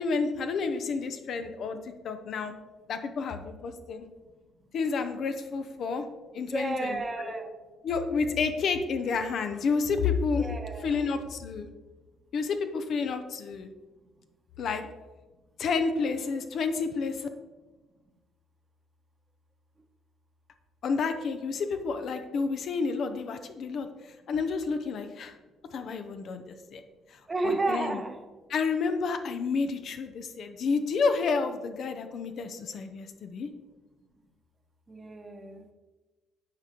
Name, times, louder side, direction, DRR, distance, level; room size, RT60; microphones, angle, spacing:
voice 1, 0.0-1.8 2.0-2.5 2.9-4.1 4.7-6.0 6.3-7.3 7.8-10.5 10.8-11.7 12.3-13.7 14.6-14.8 15.6-17.3 20.8-25.3 25.7-26.8 27.1-28.0 28.5-33.5, left 4 dB, 60° left, 7 dB, 0.6 m, -30 dB
voice 2, 6.5-7.5 10.4-11.2 27.3-28.1 34.9-35.6, right 2 dB, 30° right, 5 dB, 1.0 m, -32 dB
8.5 x 4.8 x 2.9 m, 1.2 s
hypercardioid pair, 55°, 0 cm